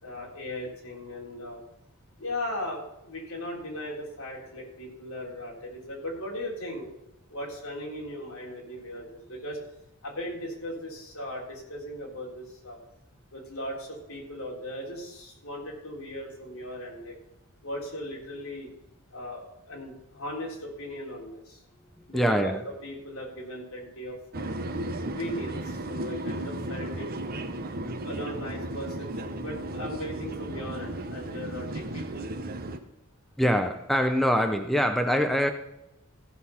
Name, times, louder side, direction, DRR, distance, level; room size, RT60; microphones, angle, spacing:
voice 1, 0.0-1.6 2.2-6.9 7.3-9.6 10.0-12.8 13.3-17.2 17.6-18.7 19.1-21.6 22.1-22.5 22.8-24.5 25.2-27.1 28.0-32.3, left 1 dB, 70° left, -1 dB, 3.7 m, -38 dB
voice 2, 22.0-22.6 33.4-35.5, equal, ahead, 6 dB, 0.6 m, -24 dB
sound 1, 24.3-32.8, right 1 dB, 45° right, 0.9 m, -35 dB
15.0 x 6.2 x 5.6 m, 0.90 s
head